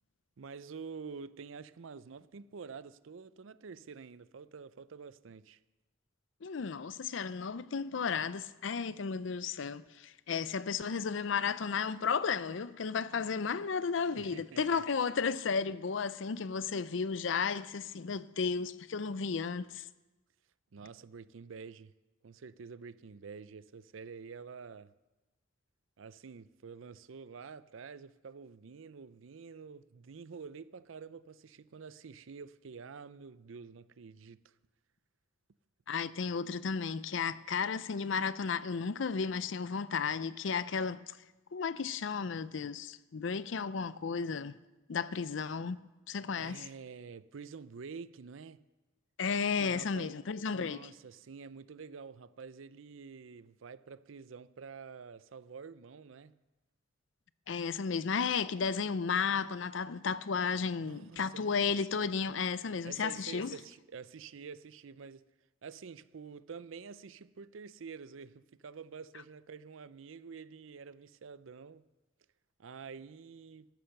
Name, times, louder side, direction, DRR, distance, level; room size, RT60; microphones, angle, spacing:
voice 1, 0.4-5.6 14.1-14.8 20.7-21.9 22.2-24.9 26.0-34.5 46.4-48.6 49.6-50.1 50.5-56.4 60.7-61.5 62.8-65.3 65.6-71.8 72.6-73.7, right 5 dB, 85° right, 0.5 m, -48 dB
voice 2, 6.4-19.8 35.9-41.0 41.5-44.5 44.9-45.8 46.1-46.7 49.2-50.9 57.5-63.6, left 5 dB, 75° left, 0.5 m, -33 dB
14.5 x 11.5 x 6.6 m
head